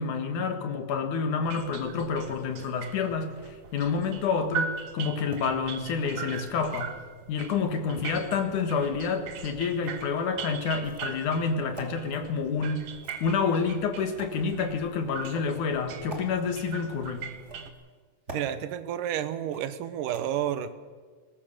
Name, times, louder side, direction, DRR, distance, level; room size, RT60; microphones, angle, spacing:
voice 1, 0.0-6.9 7.3-12.9 13.2-17.3, left 5 dB, 70° left, 7 dB, 3.1 m, -28 dB
sound 1, 1.4-17.7, right 6 dB, 55° right, 2.0 m, -40 dB
sound 2, 5.2-5.4 6.3-6.9 7.9-8.8 9.8-10.0 10.8-11.2 11.8-11.9 12.9-13.5 14.2-14.4 15.2-15.5 16.1-16.3 17.3-17.8 18.3-18.5 19.5-19.8 20.1-20.2, right 2 dB, 25° right, 2.6 m, -44 dB
voice 2, 18.3-20.8, right 10 dB, 85° right, 12 dB, 2.6 m, -30 dB
21.0 x 20.0 x 6.7 m, 1.5 s
omnidirectional pair, 3.7 m